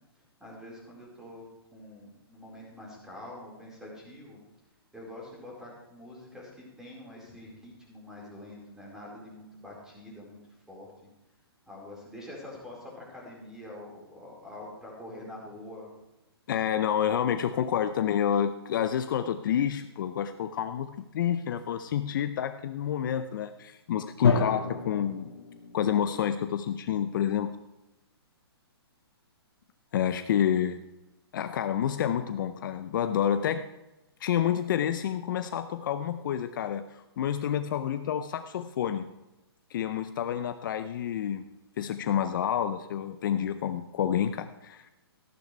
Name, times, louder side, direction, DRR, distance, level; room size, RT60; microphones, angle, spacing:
voice 1, 0.4-1.5 1.7-4.4 4.9-10.4 10.7-10.9 11.7-15.9, left 1 dB, 5° right, -3 dB, 4.4 m, -45 dB
voice 2, 16.5-25.3 25.7-27.5 29.9-30.8 31.3-33.6 34.2-39.1 39.7-41.4 41.8-44.9, left 9 dB, 50° left, 10 dB, 0.6 m, -29 dB
Drum, 24.2-26.2, left 4 dB, 75° left, 1.9 m, -30 dB
14.0 x 11.5 x 3.3 m, 1.0 s
hypercardioid pair, 135°, 13 cm